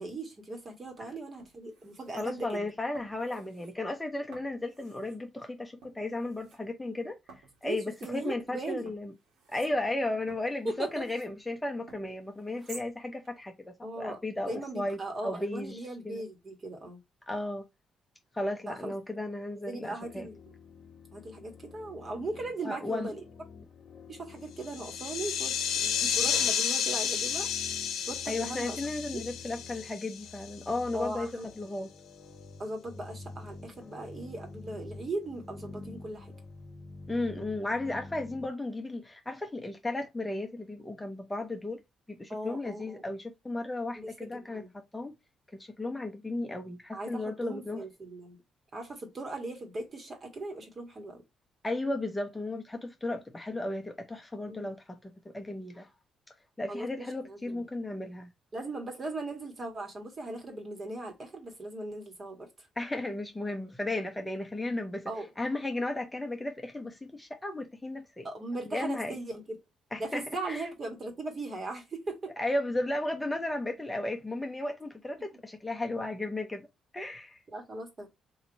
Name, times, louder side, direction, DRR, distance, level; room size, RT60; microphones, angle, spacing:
voice 1, 0.0-2.7 7.6-8.9 10.6-11.0 13.8-17.0 18.6-18.9 19.7-20.4 21.1-23.2 24.1-27.5 28.0-28.8 29.1-29.2 30.9-31.5 32.6-36.3 42.3-43.2 43.9-44.7 46.9-48.4 48.7-51.2 54.5-54.7 56.7-57.6 58.5-62.7 65.1-65.3 68.2-69.6 70.0-72.3 77.5-78.1, right 2 dB, 40° right, 1.7 m, -39 dB
sound 1, 0.8-1.0 1.4-2.6 2.9-3.7 4.3-5.2 5.8-6.6 7.3-8.6 8.9-11.3 11.9-12.9 13.2-13.3, right 3 dB, 85° right, 1.6 m, -54 dB
voice 2, 2.2-7.2 7.6-9.1 9.5-16.2 17.3-17.7 18.3-20.3 22.6-23.1 28.3-31.9 37.1-41.8 42.1-44.6 44.9-45.1 45.5-47.8 51.6-55.9 56.6-58.3 62.8-65.1 65.4-68.3 68.7-69.2 69.9-70.6 72.4-76.7 76.9-77.4, left 2 dB, 15° left, 0.7 m, -34 dB
sound 2, 20.0-38.5, left 3 dB, 55° left, 1.0 m, -49 dB
sound 3, 24.6-30.7, left 8 dB, 85° left, 1.0 m, -31 dB
3.2 x 2.8 x 4.0 m
cardioid pair, 90°, 0 cm